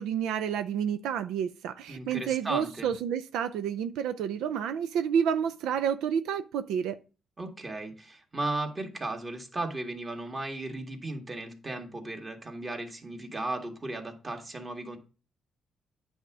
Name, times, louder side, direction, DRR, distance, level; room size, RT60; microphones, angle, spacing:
voice 1, 0.0-7.0, right 8 dB, 90° right, 10 dB, 0.4 m, -29 dB
voice 2, 1.9-2.9 7.4-15.0, right 2 dB, 30° right, 3 dB, 1.9 m, -36 dB
9.3 x 3.5 x 6.1 m, 0.35 s
cardioid pair, 90°, 0 cm